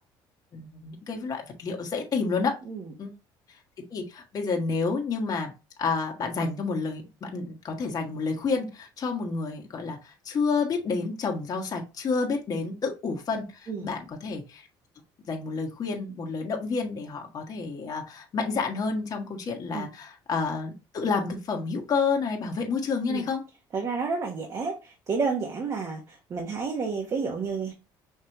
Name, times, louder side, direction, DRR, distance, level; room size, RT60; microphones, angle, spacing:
voice 1, 0.5-2.6 3.0-3.1 3.9-5.5 5.8-14.6 15.3-23.4, left 4 dB, 40° left, 2 dB, 1.4 m, -29 dB
voice 2, 23.7-27.7, right 4 dB, 40° right, 1 dB, 1.2 m, -30 dB
5.8 x 3.1 x 2.9 m, 0.28 s
cardioid pair, 105°, 9 cm